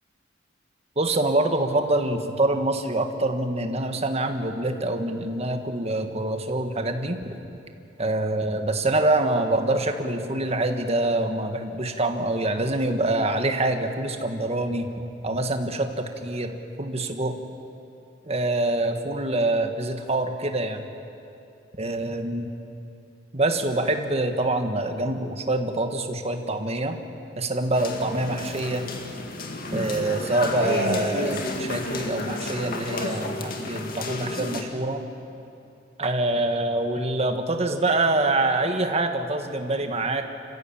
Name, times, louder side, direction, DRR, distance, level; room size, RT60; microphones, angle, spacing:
voice 1, 1.0-7.4 8.0-14.9 15.2-17.3 18.3-20.8 21.8-22.5 23.3-27.0 27.4-28.8 29.7-35.0 36.0-40.2, right 2 dB, 35° right, 5 dB, 1.6 m, -25 dB
sound 1, 27.8-34.6, left 2 dB, 55° left, 2.1 m, -31 dB
28.0 x 15.0 x 8.7 m, 2.7 s
head